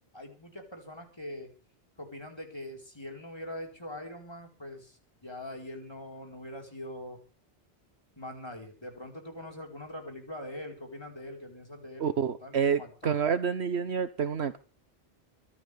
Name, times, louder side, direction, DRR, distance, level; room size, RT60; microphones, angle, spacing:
voice 1, 0.1-1.5 2.0-7.2 8.2-13.2, left 1 dB, 25° left, 2 dB, 4.8 m, -43 dB
voice 2, 12.0-14.6, right 6 dB, 75° right, 11 dB, 1.3 m, -28 dB
25.0 x 12.0 x 3.5 m, 0.35 s
omnidirectional pair, 1.1 m